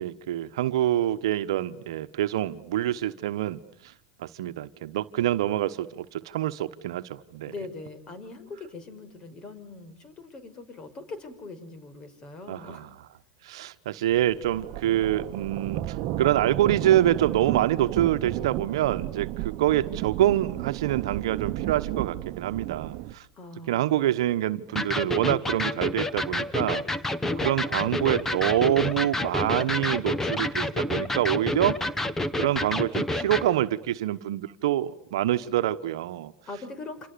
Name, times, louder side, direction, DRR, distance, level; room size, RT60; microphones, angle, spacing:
voice 1, 0.0-3.9 4.2-7.5 12.5-12.9 13.4-23.2 23.7-26.8 27.4-31.8 32.4-36.3, right 13 dB, 70° right, 10 dB, 1.2 m, -26 dB
voice 2, 7.5-12.8 23.4-24.1 36.5-37.1, left 3 dB, 30° left, 12 dB, 5.6 m, -41 dB
sound 1, 14.1-23.1, right 15 dB, 50° right, 1.2 m, -33 dB
Electric guitar, 24.8-33.5, left 1 dB, 10° left, 1.7 m, -29 dB
29.5 x 27.5 x 6.9 m, 0.72 s
hypercardioid pair, 105°, 3 cm